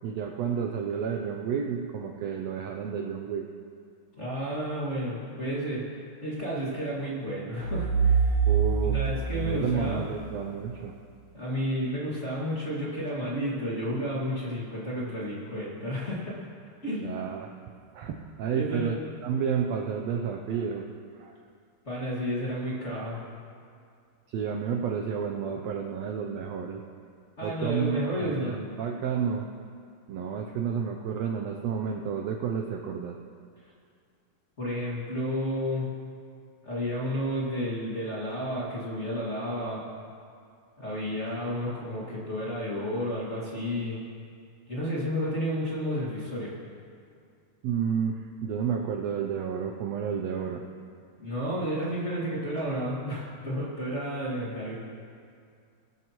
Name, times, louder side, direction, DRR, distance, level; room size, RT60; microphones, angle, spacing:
voice 1, 0.0-3.5 8.5-9.0 9.3-10.9 17.0-17.5 17.9-19.0 19.2-20.9 21.2-21.3 24.3-26.8 27.4-29.5 30.1-33.2 47.6-50.6, right 7 dB, 75° right, 2 dB, 1.6 m, -31 dB
voice 2, 4.2-8.5 8.8-10.0 11.3-16.4 16.8-17.2 18.5-19.0 21.9-23.2 27.4-28.5 34.6-35.9 36.6-39.8 40.8-44.0 44.7-46.5 51.2-54.8, equal, 25° left, -6 dB, 2.1 m, -31 dB
sound 1, 7.6-10.4, right 6 dB, 50° left, 3.3 m, -25 dB
20.5 x 12.5 x 3.1 m, 2.3 s
omnidirectional pair, 3.6 m